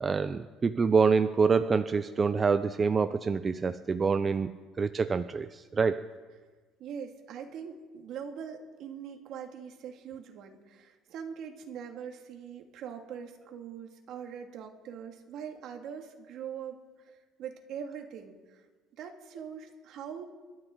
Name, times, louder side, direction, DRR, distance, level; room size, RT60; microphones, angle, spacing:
voice 1, 0.0-6.0, right 5 dB, 25° right, 11 dB, 0.5 m, -26 dB
voice 2, 6.8-18.6 19.0-20.3, right 7 dB, 60° right, 3 dB, 2.1 m, -42 dB
28.5 x 13.0 x 3.8 m, 1.4 s
cardioid pair, 130°, 0 cm